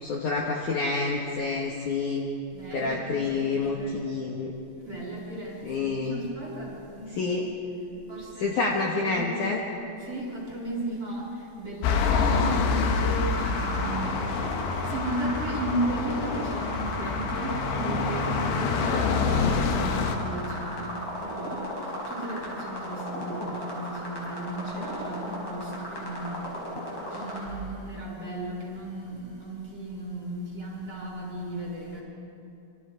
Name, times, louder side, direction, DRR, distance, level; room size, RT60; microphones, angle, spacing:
voice 1, 0.0-2.3 2.7-4.5 5.6-6.2 7.2-7.4 8.4-9.6, left 4 dB, 60° left, -1 dB, 2.5 m, -28 dB
voice 2, 2.5-4.0 4.8-7.5 8.1-8.6 9.0-9.6 10.0-14.5 14.8-26.7 27.1-32.0, right 1 dB, 25° right, -3 dB, 6.4 m, -35 dB
sound 1, 11.8-20.2, left 5 dB, 80° left, 3.6 m, -27 dB
sound 2, 13.3-27.4, equal, 30° left, 6.1 m, -36 dB
27.5 x 25.5 x 5.0 m, 2.7 s
omnidirectional pair, 4.9 m